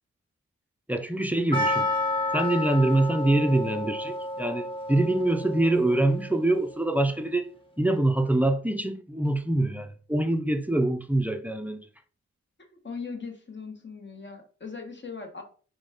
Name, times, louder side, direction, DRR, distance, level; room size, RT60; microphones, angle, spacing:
voice 1, 0.9-1.9 2.3-7.5 7.8-11.8, right 1 dB, 5° right, 0.5 m, -25 dB
Percussion, 1.5-6.4, left 1 dB, 20° left, 1.1 m, -30 dB
voice 2, 12.8-15.4, left 4 dB, 40° left, 1.1 m, -39 dB
4.0 x 3.4 x 3.5 m
wide cardioid pair, 90°, 29 cm